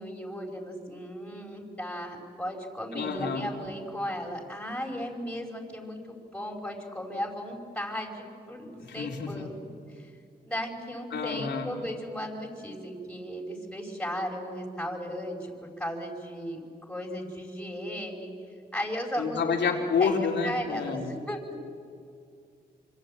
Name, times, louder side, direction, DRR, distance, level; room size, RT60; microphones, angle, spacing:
voice 1, 0.0-9.5 10.0-10.1 10.4-15.5 15.8-16.6 16.9-18.3 18.7-19.5 20.0-20.2 20.4-21.4, equal, 5° left, 1 dB, 5.3 m, -36 dB
voice 2, 2.9-3.5 9.0-9.5 11.1-11.8 19.2-21.1, left 5 dB, 85° left, 2 dB, 3.6 m, -29 dB
26.0 x 25.0 x 8.8 m, 2.3 s
cardioid pair, 80°, 18 cm